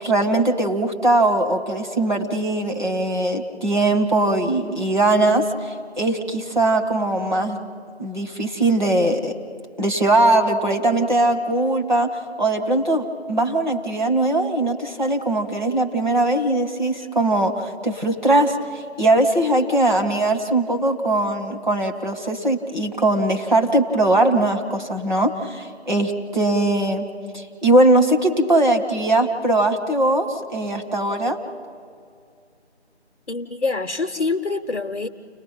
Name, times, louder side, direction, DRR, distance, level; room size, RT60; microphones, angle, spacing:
voice 1, 0.0-7.6 8.0-9.3 9.8-27.0 27.3-31.4, right 2 dB, 40° right, 1 dB, 1.7 m, -20 dB
voice 2, 33.3-35.1, left 3 dB, 55° left, 5 dB, 0.8 m, -25 dB
29.5 x 19.5 x 5.9 m, 2.3 s
figure-of-eight pair, 170°, 34 cm